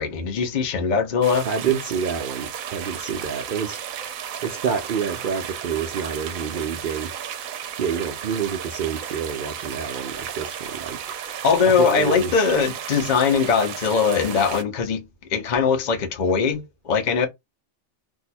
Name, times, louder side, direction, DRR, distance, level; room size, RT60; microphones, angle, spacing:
voice 1, 0.0-1.5 11.4-15.0 15.3-17.3, left 6 dB, 45° left, 0.6 m, -21 dB
sound 1, 1.2-14.6, right 9 dB, 80° right, 1.0 m, -34 dB
voice 2, 1.4-3.8 4.4-7.1 7.8-11.0 11.8-12.3, right 7 dB, 65° right, 0.5 m, -28 dB
2.7 x 2.2 x 4.1 m
omnidirectional pair, 1.4 m